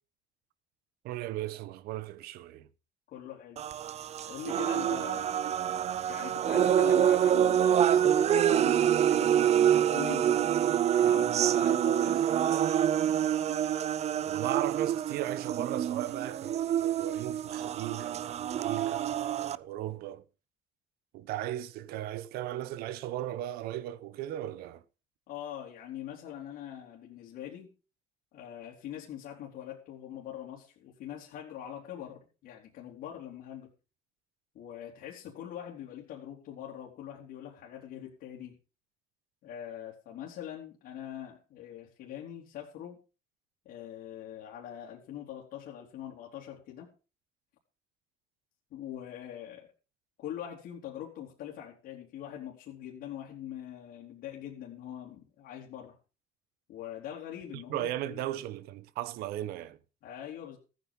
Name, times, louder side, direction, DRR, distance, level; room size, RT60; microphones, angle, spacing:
voice 1, 1.0-2.7 14.3-20.2 21.1-24.8 57.5-59.8, right 13 dB, 80° right, 1.0 m, -37 dB
voice 2, 3.1-3.6 4.3-5.5 6.1-10.6 11.0-12.4 25.3-27.7 28.3-33.7 34.5-38.6 39.4-43.0 43.7-46.9 48.7-49.7 50.2-56.0 56.7-58.3 60.0-60.6, left 10 dB, 70° left, 3.4 m, -43 dB
sound 1, 3.6-19.6, right 10 dB, 45° right, 0.6 m, -26 dB
14.5 x 9.2 x 5.3 m
cardioid pair, 100°, 16 cm